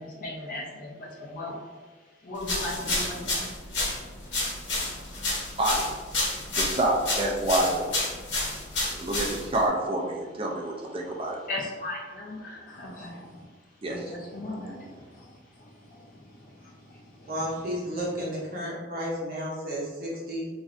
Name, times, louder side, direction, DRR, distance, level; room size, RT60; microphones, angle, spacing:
voice 1, 0.0-5.6 8.0-9.5 10.5-18.3, left 1 dB, 50° left, -4 dB, 0.6 m, -41 dB
sound 1, 2.4-9.7, left 2 dB, 85° left, 1.0 m, -30 dB
voice 2, 6.6-7.9 9.0-11.4 13.8-14.0, right 1 dB, 30° right, -1 dB, 0.4 m, -27 dB
voice 3, 17.3-20.5, equal, 50° right, -5 dB, 0.8 m, -32 dB
3.2 x 2.5 x 2.5 m, 1.3 s
head